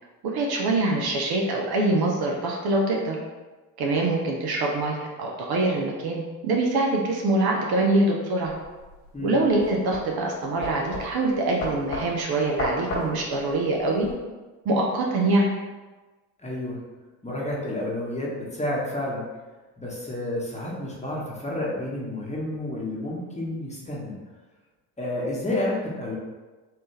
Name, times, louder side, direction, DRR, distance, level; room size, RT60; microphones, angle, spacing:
voice 1, 0.2-3.2 3.8-8.5 9.2-14.1 14.6-15.5, right 2 dB, 50° right, 0 dB, 0.9 m, -24 dB
sound 1, 8.4-14.1, left 1 dB, 75° left, 1.3 m, -34 dB
voice 2, 16.4-16.8 17.2-19.3 19.8-24.2 25.0-26.2, left 1 dB, 15° left, -4 dB, 1.2 m, -30 dB
4.4 x 2.7 x 3.3 m, 1.2 s
hypercardioid pair, 65°, 49 cm